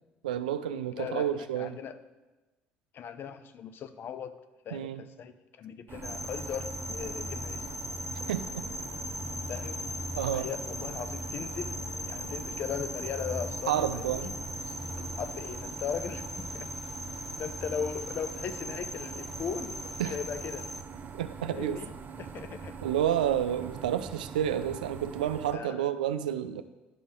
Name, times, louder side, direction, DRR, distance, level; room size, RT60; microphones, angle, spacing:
voice 1, 0.2-1.8 4.7-5.0 8.3-8.6 10.2-10.5 13.7-14.3 20.0-20.1 21.2-21.8 22.8-26.6, right 10 dB, 90° right, 12 dB, 0.3 m, -30 dB
voice 2, 0.9-2.0 2.9-4.3 4.6-7.7 9.5-9.8 10.3-11.8 12.1-14.3 15.2-16.7 17.4-19.8 20.1-20.6 21.5-22.8 25.5-25.9, left 7 dB, 55° left, 11 dB, 0.6 m, -38 dB
sound 1, 5.9-25.5, right 6 dB, 45° right, 0.7 m, -44 dB
sound 2, 6.0-20.8, left 1 dB, 5° left, 0.6 m, -38 dB
10.5 x 5.5 x 3.8 m, 1.1 s
hypercardioid pair, 60°, 4 cm